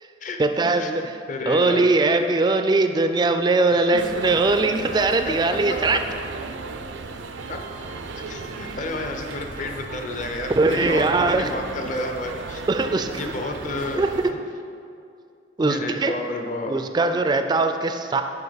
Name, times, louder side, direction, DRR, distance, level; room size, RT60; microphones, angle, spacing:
voice 1, 0.4-1.0 1.5-6.0 10.6-11.5 12.7-13.1 14.0-14.1 15.6-16.1 16.7-18.2, right 3 dB, 25° right, 7 dB, 0.3 m, -20 dB
voice 2, 1.3-1.8 3.9-4.0 5.3-5.4 5.9-6.0 7.5-7.6 8.2-12.7 13.2-14.4 15.6-16.7, left 2 dB, 45° left, 4 dB, 0.7 m, -31 dB
sound 1, 4.0-14.3, right 4 dB, 85° right, 0.5 m, -35 dB
11.0 x 4.8 x 4.0 m, 2.4 s
head